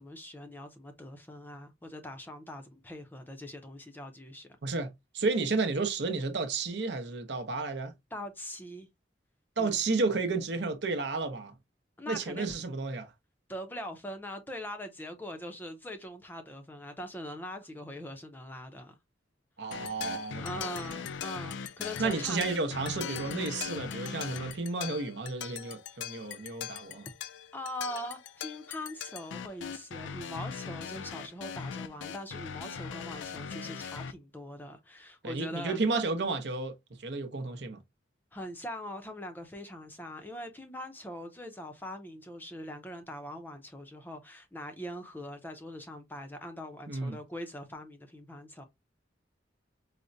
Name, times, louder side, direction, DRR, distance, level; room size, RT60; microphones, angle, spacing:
voice 1, 0.0-4.5 8.1-8.9 9.6-9.8 12.0-12.5 13.5-19.0 20.4-22.5 27.5-35.8 38.3-48.6, left 1 dB, 10° left, 0.5 m, -42 dB
voice 2, 4.6-7.9 9.6-11.5 12.1-13.1 19.6-21.0 22.0-27.1 35.2-37.8 46.9-47.2, right 3 dB, 65° right, 0.7 m, -32 dB
sound 1, 19.7-34.1, left 7 dB, 75° left, 0.4 m, -40 dB
4.9 x 2.1 x 2.6 m
head